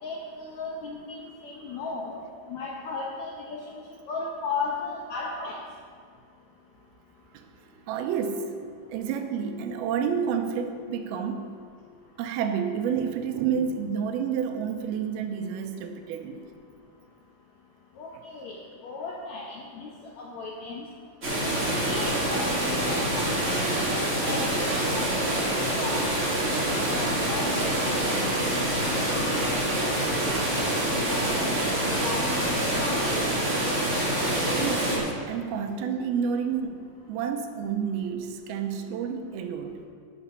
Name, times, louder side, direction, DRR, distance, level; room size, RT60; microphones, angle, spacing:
voice 1, 0.0-3.8 4.1-5.6 18.0-20.9 21.4-21.5 21.8-25.5 25.8-26.1 26.9-29.9 30.3-33.2, left 3 dB, 75° left, -1 dB, 1.6 m, -36 dB
voice 2, 7.9-8.6 8.9-11.6 12.2-16.5 34.5-36.8 37.1-39.8, right 7 dB, 90° right, 6 dB, 2.7 m, -29 dB
sound 1, 21.2-35.0, right 1 dB, 25° right, 2.1 m, -26 dB
12.5 x 7.2 x 5.5 m, 2.2 s
omnidirectional pair, 4.4 m